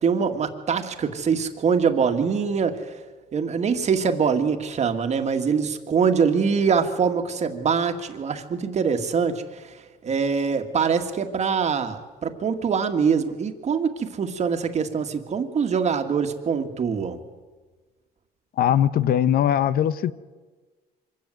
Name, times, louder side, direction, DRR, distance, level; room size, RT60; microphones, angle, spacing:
voice 1, 0.0-2.9 3.3-9.7 10.0-17.2, right 6 dB, 40° right, 2.0 m, -24 dB
voice 2, 18.6-20.1, left 10 dB, 60° left, 0.8 m, -20 dB
24.5 x 14.0 x 9.4 m
cardioid pair, 110°, 17 cm